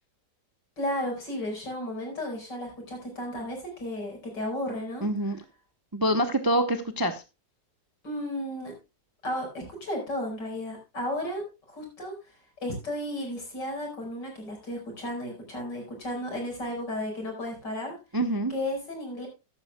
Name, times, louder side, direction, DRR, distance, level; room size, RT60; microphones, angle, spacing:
voice 1, 0.8-5.1 8.0-8.8 9.2-12.1 12.6-18.0 18.5-19.3, left 1 dB, 70° left, 1 dB, 5.6 m, -33 dB
voice 2, 5.0-5.4 5.9-7.2 18.1-18.5, right 1 dB, 20° right, 8 dB, 0.6 m, -26 dB
14.5 x 11.0 x 2.3 m, 0.27 s
omnidirectional pair, 1.9 m